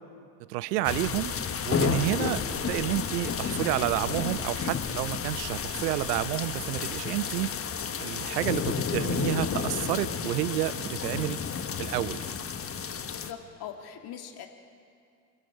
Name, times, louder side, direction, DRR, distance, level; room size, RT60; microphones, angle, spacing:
voice 1, 0.5-1.3 1.7-7.5 8.0-11.4 11.8-12.2, right 16 dB, 75° right, 16 dB, 0.8 m, -30 dB
sound 1, 0.8-13.3, left 6 dB, 30° left, 1.3 m, -31 dB
voice 2, 13.0-14.5, left 9 dB, 50° left, 4 dB, 1.9 m, -42 dB
27.5 x 21.5 x 4.8 m, 2.3 s
hypercardioid pair, 70°, 48 cm